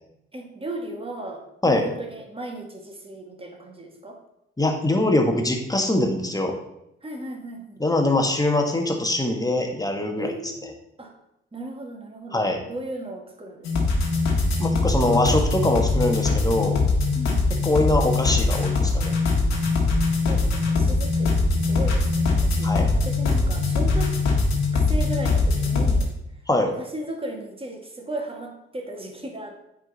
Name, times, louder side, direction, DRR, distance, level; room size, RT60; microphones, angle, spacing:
voice 1, 0.3-4.2 7.0-7.8 10.2-10.7 11.0-11.1 11.5-13.9 17.1-17.4 19.5-19.6 20.2-24.1 24.7-26.1 26.6-29.7, right 1 dB, 20° right, 2 dB, 1.7 m, -36 dB
voice 2, 4.6-6.6 7.8-10.5 12.3-12.6 14.6-16.8 17.6-19.1 22.6-22.9 26.5-26.7, left 1 dB, 10° left, 3 dB, 1.5 m, -23 dB
sound 1, 13.6-26.0, left 3 dB, 65° left, 1.6 m, -22 dB
9.1 x 3.8 x 4.0 m, 0.82 s
hypercardioid pair, 40°, 29 cm